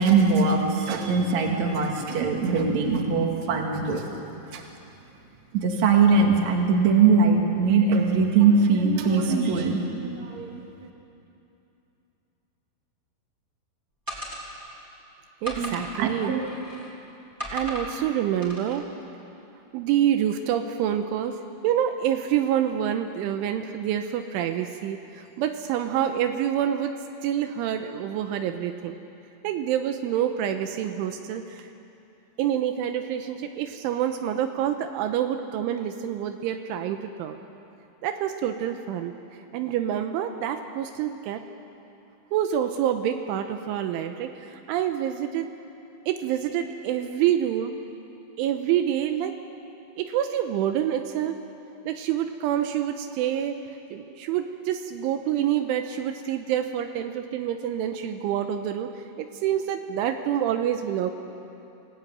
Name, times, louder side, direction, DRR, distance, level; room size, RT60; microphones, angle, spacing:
voice 1, 0.0-4.0 4.5-4.6 5.5-10.6 15.6-16.5, right 4 dB, 45° right, 2 dB, 2.7 m, -21 dB
sound 1, 14.1-14.9 15.4-16.9 17.4-18.0 18.4-18.8, equal, 5° right, 3.8 m, -36 dB
voice 2, 15.4-16.3 17.5-18.9 19.7-26.9 27.2-29.0 29.4-31.7 32.4-37.4 38.0-39.1 39.5-41.4 42.3-45.5 46.1-47.7 48.4-49.4 50.0-51.4 51.9-53.6 53.9-61.1, right 10 dB, 80° right, 7 dB, 3.2 m, -27 dB
27.5 x 17.5 x 9.2 m, 2.8 s
omnidirectional pair, 5.8 m